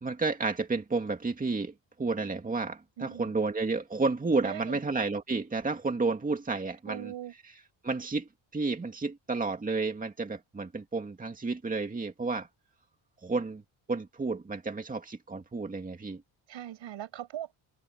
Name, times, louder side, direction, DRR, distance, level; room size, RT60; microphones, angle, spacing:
voice 1, 0.0-7.1 7.8-12.5 13.2-13.6 13.9-16.2, right 3 dB, 20° right, 2.3 m, -31 dB
voice 2, 3.0-3.3 4.4-4.8 6.9-7.3 16.5-17.6, right 11 dB, 75° right, 5.4 m, -40 dB
cardioid pair, 155°, 45 cm